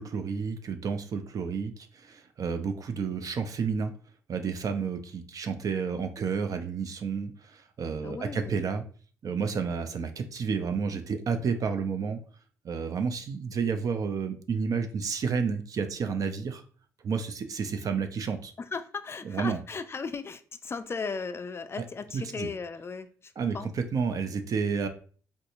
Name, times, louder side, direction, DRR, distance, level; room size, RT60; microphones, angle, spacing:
voice 1, 0.0-3.9 4.3-8.8 9.2-12.2 12.6-16.6 17.0-18.5 19.2-19.6 22.1-22.5 23.4-24.9, right 5 dB, 55° right, 0.5 m, -31 dB
voice 2, 8.0-8.6 18.6-23.7, left 5 dB, 35° left, 0.3 m, -36 dB
3.5 x 2.7 x 2.5 m
hypercardioid pair, 50°, 7 cm